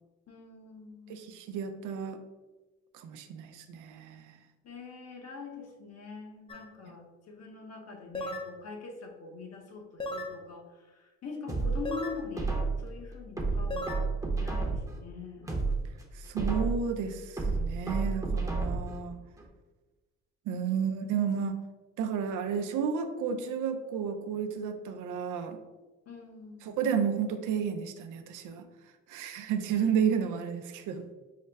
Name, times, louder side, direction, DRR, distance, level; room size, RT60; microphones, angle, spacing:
voice 1, 0.3-1.3 4.6-14.1 14.4-15.5 20.7-20.8 26.1-26.7, left 4 dB, 55° left, 1 dB, 0.9 m, -43 dB
voice 2, 1.1-2.2 2.9-4.4 16.1-19.2 20.5-21.6 22.0-25.6 26.6-28.7 29.1-31.0, right 7 dB, 85° right, 7 dB, 0.5 m, -32 dB
sound 1, 6.5-6.7 8.1-8.5 10.0-10.4 11.9-12.2 13.7-14.0, left 1 dB, 20° left, 0.4 m, -35 dB
sound 2, 11.5-12.9 13.4-15.0 15.4-16.9 17.4-19.0 19.4-19.5, right 3 dB, 10° right, 0.8 m, -31 dB
5.5 x 2.1 x 3.4 m, 1.2 s
cardioid pair, 90°, 30 cm